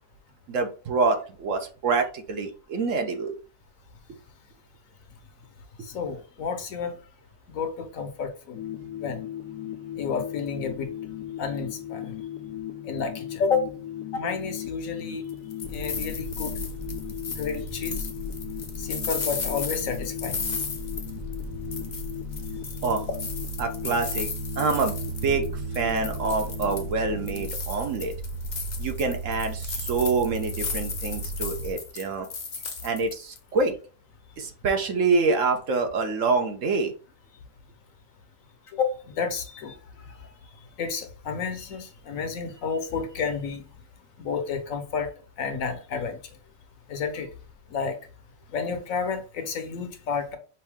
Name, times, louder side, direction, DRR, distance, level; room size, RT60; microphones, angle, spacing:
voice 1, 0.5-3.4 22.8-23.1 23.6-24.3 24.6-24.9 25.2-28.1 28.8-32.3 32.8-33.7 34.4-36.9, right 4 dB, 60° right, 1.1 m, -26 dB
voice 2, 5.9-7.0 7.5-8.6 9.0-9.2 10.0-10.9 11.4-12.1 12.8-13.7 14.1-15.2 15.7-16.6 17.4-18.0 18.8-20.4 38.7-39.8 40.8-43.6 44.2-45.1 45.4-46.2 46.9-47.3 47.7-48.0 48.5-50.4, left 5 dB, 70° left, 1.2 m, -30 dB
sound 1, 8.5-27.5, left 11 dB, 85° left, 1.2 m, -38 dB
sound 2, 15.3-21.4 21.7-25.5 25.7-26.9 27.3-33.4, left 4 dB, 40° left, 0.7 m, -35 dB
sound 3, 15.6-31.7, right 2 dB, 40° right, 0.7 m, -36 dB
5.6 x 2.7 x 3.5 m
omnidirectional pair, 1.6 m